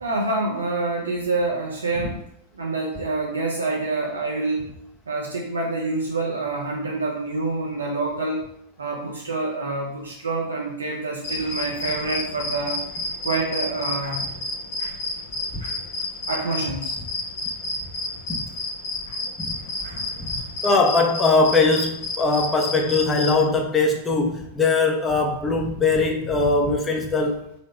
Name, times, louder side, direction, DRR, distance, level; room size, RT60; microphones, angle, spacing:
voice 1, 0.0-2.2 2.5-4.6 5.1-8.4 8.8-12.8 13.2-14.2 14.8-14.9 15.6-15.7 16.3-17.0 19.1-19.2 19.8-20.1, right 3 dB, 75° right, -2 dB, 0.7 m, -27 dB
sound 1, 11.2-23.4, left 2 dB, 50° left, 0.9 m, -30 dB
voice 2, 20.6-27.4, left 3 dB, 20° left, 2 dB, 0.9 m, -21 dB
4.0 x 3.1 x 4.2 m, 0.74 s
figure-of-eight pair, 90°, 0 cm